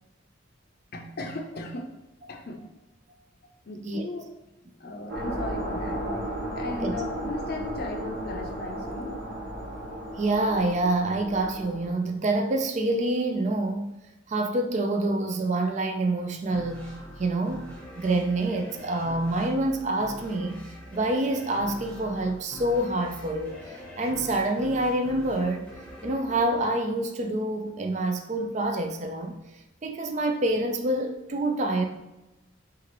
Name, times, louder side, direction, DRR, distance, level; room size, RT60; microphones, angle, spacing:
voice 1, 0.9-1.9 2.3-2.7 3.4-4.3 4.8-6.3 6.5-9.2, left 2 dB, 50° left, 3 dB, 0.6 m, -36 dB
sound 1, 5.1-11.9, right 1 dB, 75° right, 1.4 m, -34 dB
voice 2, 10.2-14.0 14.3-16.9 17.2-20.6 20.9-23.6 24.0-25.7 26.0-29.3 29.8-31.8, right 2 dB, 35° right, 5 dB, 0.4 m, -27 dB
sound 2, 16.5-27.7, equal, 5° left, 0.9 m, -44 dB
5.9 x 2.5 x 3.0 m, 0.99 s
head